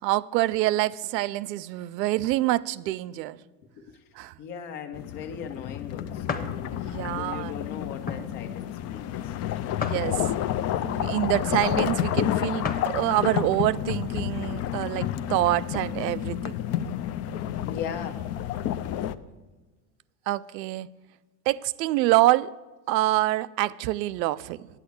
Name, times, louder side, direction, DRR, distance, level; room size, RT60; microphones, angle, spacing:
voice 1, 0.0-3.4 4.2-4.3 6.7-7.7 9.8-10.3 10.8-16.5 20.3-20.9 21.5-22.5 22.9-24.7, right 16 dB, 85° right, 0.5 m, -26 dB
voice 2, 4.4-6.5 7.0-9.3 17.6-18.3, left 7 dB, 70° left, 1.4 m, -38 dB
sound 1, 4.9-19.2, left 11 dB, 35° left, 0.4 m, -30 dB
sound 2, 6.3-6.6 7.1-7.3 8.0-8.3 9.8-10.5 12.6-12.9 13.4-13.5 15.2-15.9, left 4 dB, 20° left, 1.0 m, -34 dB
8.4 x 8.2 x 8.1 m
supercardioid pair, 100°, 49 cm